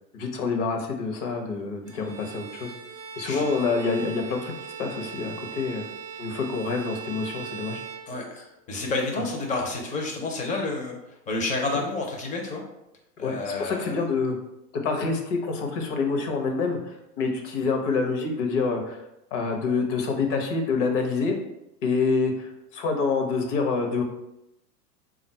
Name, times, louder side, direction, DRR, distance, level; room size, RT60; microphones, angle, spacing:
voice 1, 0.1-2.7 3.2-5.9 6.2-7.8 9.1-9.2 11.7-11.8 13.2-14.4 14.7-19.0 19.3-21.4 21.8-24.0, left 4 dB, 45° left, 3 dB, 0.9 m, -27 dB
Bowed string instrument, 1.9-8.6, right 7 dB, 35° right, 0.4 m, -40 dB
voice 2, 8.1-11.0 11.3-12.6 13.2-14.0, left 3 dB, 15° left, 1 dB, 0.6 m, -30 dB
3.7 x 2.4 x 4.3 m, 0.87 s
figure-of-eight pair, 100°, 49 cm